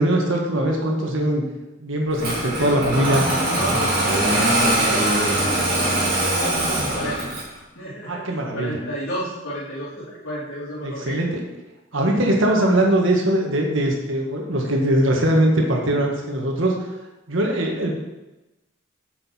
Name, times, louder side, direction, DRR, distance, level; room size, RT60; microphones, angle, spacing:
voice 1, 0.0-1.4 1.8-3.2 8.0-8.8 10.8-11.4 11.9-16.7 17.3-18.0, right 1 dB, 70° right, 0 dB, 1.7 m, -21 dB
Engine starting, 2.2-7.6, right 1 dB, 45° right, 3.0 m, -22 dB
voice 2, 2.5-7.2 7.7-11.2, equal, 80° left, -12 dB, 3.3 m, -31 dB
8.8 x 6.5 x 4.5 m, 1.0 s
head